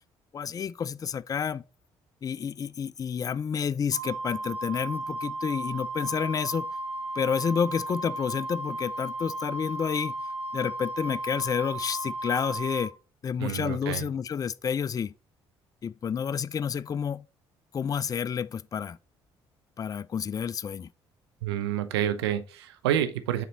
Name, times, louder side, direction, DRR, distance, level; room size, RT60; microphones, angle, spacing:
voice 1, 0.3-1.6 2.2-6.7 7.2-10.1 10.5-12.9 13.2-15.1 15.8-17.2 17.7-19.0 19.8-20.9, left 7 dB, 25° left, 0.3 m, -29 dB
Wind instrument woodwind instrument, 3.9-12.9, right 1 dB, 40° right, 1.9 m, -35 dB
voice 2, 13.4-14.0 21.4-23.4, right 11 dB, 75° right, 0.6 m, -28 dB
7.0 x 4.1 x 3.9 m
figure-of-eight pair, 50°, 14 cm